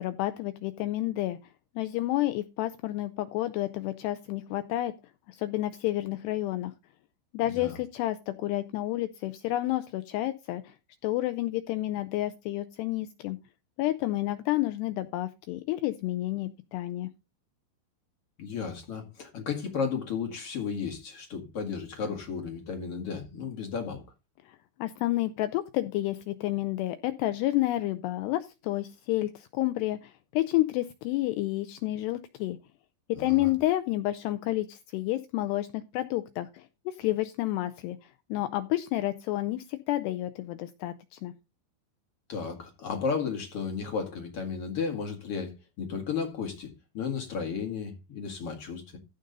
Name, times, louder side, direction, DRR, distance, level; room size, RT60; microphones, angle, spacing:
voice 1, 0.0-1.4 1.8-4.9 5.3-6.7 7.3-10.7 11.0-13.4 13.8-17.1 24.5-32.6 33.1-41.3, left 16 dB, 80° left, 2.4 m, -30 dB
voice 2, 7.5-7.8 18.4-24.0 33.2-33.5 42.3-49.0, left 5 dB, 50° left, 1.9 m, -34 dB
15.0 x 5.3 x 4.0 m
omnidirectional pair, 5.4 m